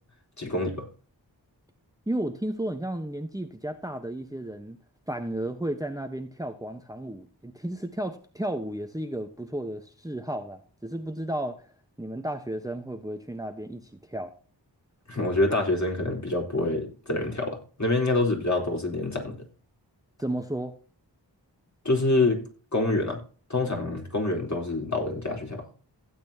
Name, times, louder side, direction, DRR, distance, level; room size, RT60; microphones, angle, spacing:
voice 1, 0.4-0.9 15.1-19.4 21.8-22.4 22.7-23.2 23.5-25.7, left 2 dB, 40° left, 4.2 m, -26 dB
voice 2, 2.1-4.8 5.1-11.7 12.0-14.3 20.2-20.8, right 1 dB, 10° right, 1.1 m, -33 dB
16.0 x 8.6 x 2.9 m
cardioid pair, 40°, 44 cm